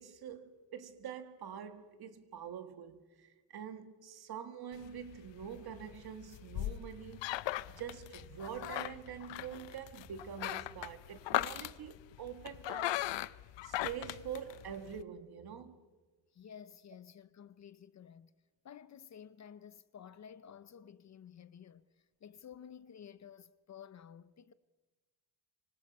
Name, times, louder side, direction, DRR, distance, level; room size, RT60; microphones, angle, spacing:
voice 1, 0.0-13.1 13.6-15.8, right 8 dB, 55° right, 1.9 m, -45 dB
sound 1, 4.7-15.0, left 15 dB, 75° left, 0.7 m, -39 dB
voice 2, 16.3-18.3 18.6-24.5, left 8 dB, 40° left, 0.6 m, -53 dB
25.5 x 25.0 x 5.4 m
cardioid pair, 160°, 44 cm